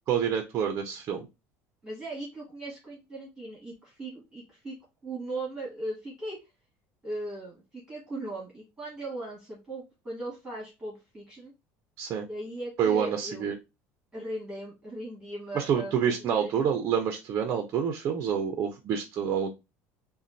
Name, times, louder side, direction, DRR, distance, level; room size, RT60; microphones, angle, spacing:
voice 1, 0.1-1.3 12.0-12.3 12.8-13.6 15.5-19.5, right 8 dB, 40° right, 5 dB, 0.6 m, -27 dB
voice 2, 1.8-4.8 5.0-6.4 7.0-11.5 12.3-13.4 14.1-16.7, right 1 dB, 10° right, -5 dB, 1.7 m, -38 dB
4.2 x 2.2 x 2.5 m, 0.25 s
cardioid pair, 155°, 6 cm